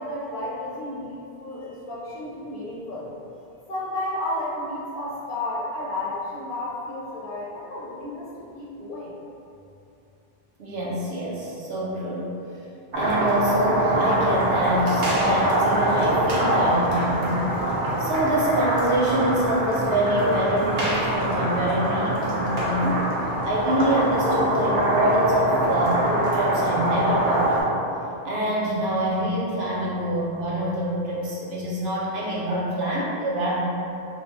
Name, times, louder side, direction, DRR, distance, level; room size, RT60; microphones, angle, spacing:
voice 1, 0.0-3.1 3.7-9.1, left 1 dB, 60° left, -8 dB, 0.8 m, -32 dB
voice 2, 10.6-12.3 12.9-17.5 18.0-23.0 23.4-27.7 28.2-33.6, right 1 dB, 80° right, -6 dB, 1.0 m, -25 dB
sound 1, 12.9-27.6, right 1 dB, 55° right, 0.9 m, -24 dB
3.2 x 2.3 x 3.9 m, 2.7 s
omnidirectional pair, 1.0 m